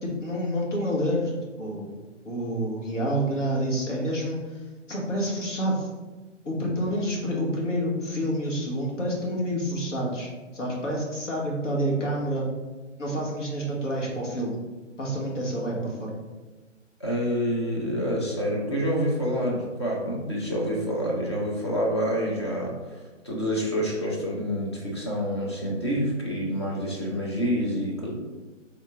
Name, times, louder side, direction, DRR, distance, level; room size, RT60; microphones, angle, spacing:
voice 1, 0.0-4.4 4.9-5.9 6.4-12.5 13.0-14.6 15.0-16.1, equal, 75° left, -2 dB, 1.3 m, -28 dB
voice 2, 17.0-28.1, equal, 25° left, -3 dB, 0.4 m, -27 dB
3.7 x 2.6 x 3.4 m, 1.2 s
figure-of-eight pair, 140°, 37 cm